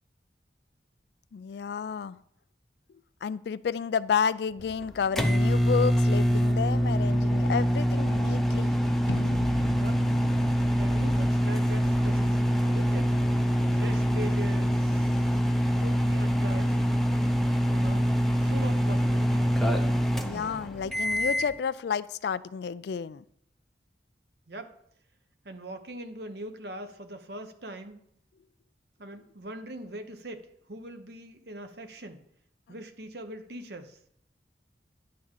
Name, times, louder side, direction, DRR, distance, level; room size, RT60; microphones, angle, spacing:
voice 1, 1.3-2.2 3.2-8.8 20.2-23.2, left 6 dB, 65° left, 17 dB, 0.3 m, -30 dB
sound 1, 4.4-4.9 6.0-6.1 6.7-7.0 7.3-7.4 7.7-15.1, left 1 dB, 40° right, 1.9 m, -50 dB
sound 2, 4.6-21.5, equal, ahead, 0.6 m, -25 dB
sound 3, 9.1-15.1, left 2 dB, 85° left, 0.7 m, -41 dB
voice 2, 10.7-13.1 13.7-15.2 15.8-16.8 17.7-18.1 18.4-19.5 24.5-24.7 25.4-28.0 29.0-32.2 32.7-34.0, right 1 dB, 65° right, 8 dB, 0.9 m, -41 dB
10.5 x 3.7 x 7.2 m, 0.71 s
head